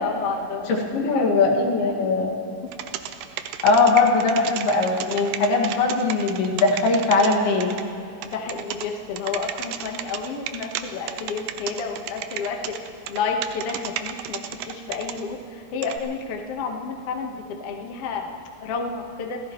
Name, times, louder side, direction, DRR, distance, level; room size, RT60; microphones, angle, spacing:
voice 1, 0.0-0.7 1.1-1.4 2.0-2.1 8.3-12.6 13.1-14.4 14.9-15.4 15.7-17.3 17.6-18.3 18.6-19.4, left 5 dB, 60° left, 2 dB, 1.5 m, -30 dB
voice 2, 0.7-2.3 3.6-7.7, left 3 dB, 80° left, 0 dB, 3.9 m, -20 dB
sound 1, 2.7-7.8 8.2-8.9 9.2-10.8 11.1-15.2 15.8-16.0, right 11 dB, 80° right, 2.1 m, -32 dB
29.0 x 15.5 x 3.1 m, 2.7 s
omnidirectional pair, 4.5 m